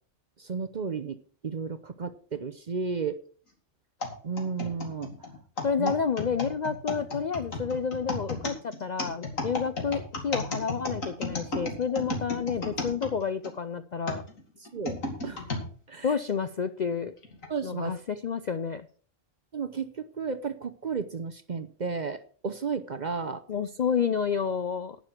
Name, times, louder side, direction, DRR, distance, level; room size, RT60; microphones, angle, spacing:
voice 1, 0.4-1.2 1.4-3.2 4.2-5.3 5.8-5.9 14.6-15.0 15.2-15.5 15.9-16.2 17.5-18.0 19.5-23.4, right 5 dB, 45° right, 10 dB, 0.7 m, -33 dB
sound 1, 4.0-13.5 14.1-15.7 16.3-16.4 17.2-17.5, left 2 dB, 85° left, 2.8 m, -34 dB
voice 2, 5.6-14.2 16.0-17.1 17.6-18.9 23.5-25.0, left 6 dB, 55° left, 10 dB, 0.5 m, -30 dB
11.5 x 9.2 x 4.5 m, 0.43 s
omnidirectional pair, 1.3 m